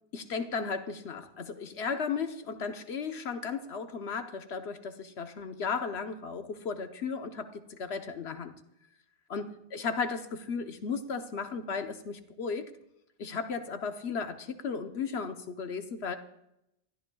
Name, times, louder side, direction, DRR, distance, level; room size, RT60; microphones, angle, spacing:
voice 1, 0.1-8.5 9.3-12.7 13.2-16.2, left 5 dB, 85° left, 7 dB, 1.2 m, -35 dB
25.5 x 13.5 x 2.3 m, 0.83 s
omnidirectional pair, 1.1 m